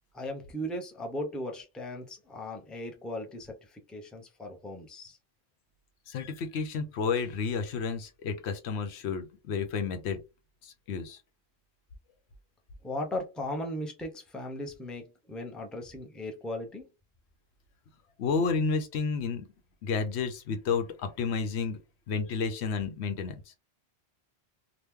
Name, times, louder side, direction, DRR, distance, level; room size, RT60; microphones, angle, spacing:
voice 1, 0.1-5.2 12.8-16.9, left 1 dB, ahead, 0.5 m, -37 dB
voice 2, 6.1-10.2 10.6-11.2 18.2-19.5 19.8-21.8 22.1-23.5, left 5 dB, 80° left, 0.9 m, -31 dB
3.0 x 2.2 x 3.5 m
omnidirectional pair, 1.1 m